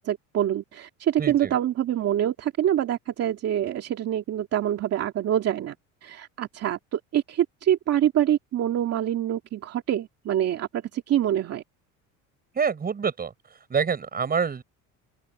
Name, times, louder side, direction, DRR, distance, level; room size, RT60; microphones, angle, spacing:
voice 1, 0.0-5.7 6.0-11.6, right 11 dB, 50° right, 2.4 m, -25 dB
voice 2, 1.2-1.6 12.5-13.3 13.7-14.6, right 6 dB, 30° right, 6.0 m, -26 dB
open air
cardioid pair, 125°, 32 cm